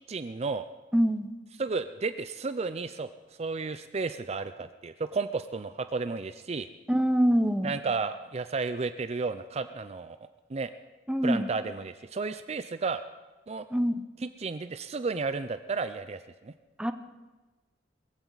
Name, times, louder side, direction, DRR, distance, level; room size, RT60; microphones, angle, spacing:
voice 1, 0.1-0.7 1.6-3.1 3.4-6.7 7.6-10.2 10.5-10.7 11.2-13.0 13.5-13.6 14.2-16.5, right 4 dB, 35° right, 11 dB, 0.5 m, -32 dB
voice 2, 0.9-1.3 6.9-7.7 11.1-11.5 13.7-14.0 16.8-16.9, equal, 5° right, 9 dB, 0.8 m, -25 dB
21.5 x 15.0 x 4.0 m, 1.2 s
head